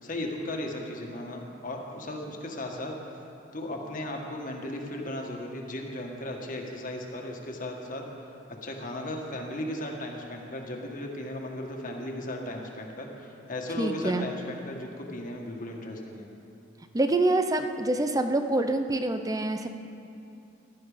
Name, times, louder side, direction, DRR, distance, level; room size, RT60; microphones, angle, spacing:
voice 1, 0.0-2.9 3.5-8.0 8.6-16.3, left 1 dB, 45° left, 1 dB, 1.8 m, -36 dB
voice 2, 13.8-14.3 16.9-19.7, right 2 dB, 20° right, 7 dB, 0.7 m, -26 dB
16.5 x 12.5 x 5.1 m, 2.7 s
head